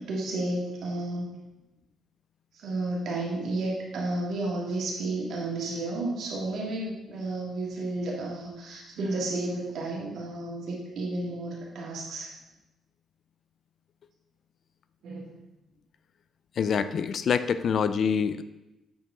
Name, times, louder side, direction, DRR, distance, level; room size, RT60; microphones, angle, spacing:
voice 1, 0.0-1.3 2.5-12.3 15.0-15.4, right 2 dB, 75° right, -2 dB, 1.9 m, -32 dB
voice 2, 16.6-18.4, left 6 dB, 55° left, 13 dB, 0.4 m, -26 dB
7.8 x 4.8 x 3.7 m, 0.98 s
cardioid pair, 90°, 0 cm